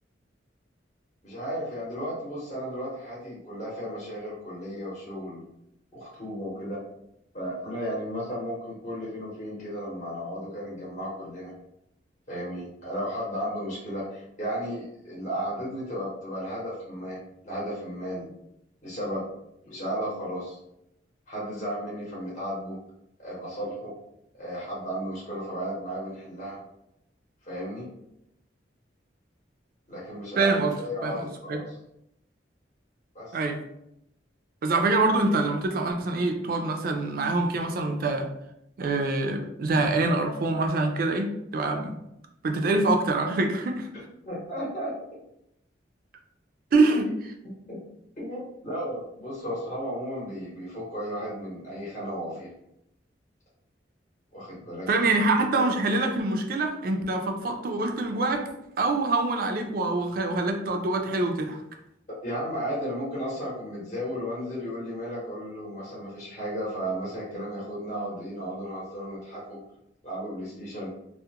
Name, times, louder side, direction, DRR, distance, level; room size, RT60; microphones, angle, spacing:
voice 1, 1.2-5.4 5.9-6.8 7.3-11.5 12.3-17.2 17.4-18.3 18.8-19.3 19.6-20.6 21.3-22.8 23.2-23.9 24.4-26.6 27.4-27.9 29.9-31.8 33.1-33.3 44.3-44.9 47.7-47.8 48.2-52.5 54.3-54.9 62.2-69.6 70.0-70.9, equal, 40° left, -7 dB, 0.8 m, -34 dB
voice 2, 30.4-30.8 31.0-31.6 33.3-33.6 34.6-38.3 38.8-42.0 42.4-43.9 46.7-47.1 54.9-58.5 58.8-61.6, right 2 dB, 50° right, 4 dB, 0.3 m, -25 dB
2.3 x 2.0 x 2.8 m, 0.81 s
head